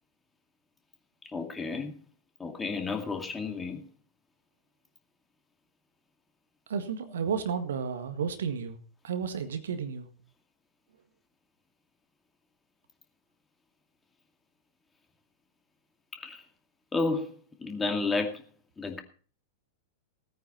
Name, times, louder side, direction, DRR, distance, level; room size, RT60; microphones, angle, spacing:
voice 1, 1.3-2.0 2.4-3.8 16.1-16.4 16.9-18.4 18.8-19.0, left 3 dB, 15° left, 2.4 m, -32 dB
voice 2, 6.7-8.8 9.0-10.1, right 6 dB, 65° right, 1.7 m, -32 dB
17.5 x 9.5 x 4.4 m
figure-of-eight pair, 95°, 0 cm